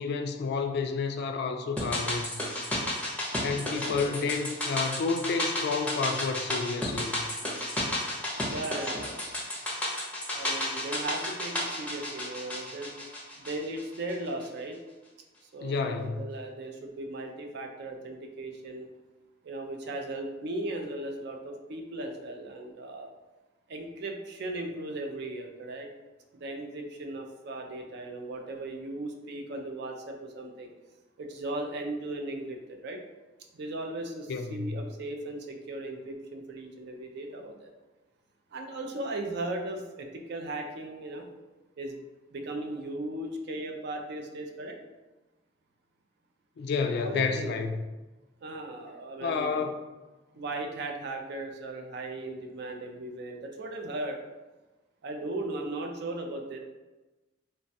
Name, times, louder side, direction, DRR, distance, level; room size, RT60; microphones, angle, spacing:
voice 1, 0.0-2.4 3.4-7.3 15.6-16.2 34.3-34.8 46.6-47.7 49.2-49.8, left 4 dB, 60° left, 6 dB, 0.3 m, -30 dB
sound 1, 1.8-14.1 14.4-14.5, left 1 dB, 10° left, 0.5 m, -33 dB
voice 2, 3.7-4.3 8.5-9.4 10.3-12.9 13.4-14.8 15.5-18.9 19.4-23.1 23.7-25.9 26.4-30.7 31.2-33.0 33.5-37.7 38.5-41.3 41.8-42.0 42.3-44.8 46.8-47.6 48.4-49.7 50.3-54.2 55.0-56.6, right 2 dB, 60° right, 3 dB, 0.4 m, -37 dB
3.1 x 2.2 x 2.7 m, 1.1 s
head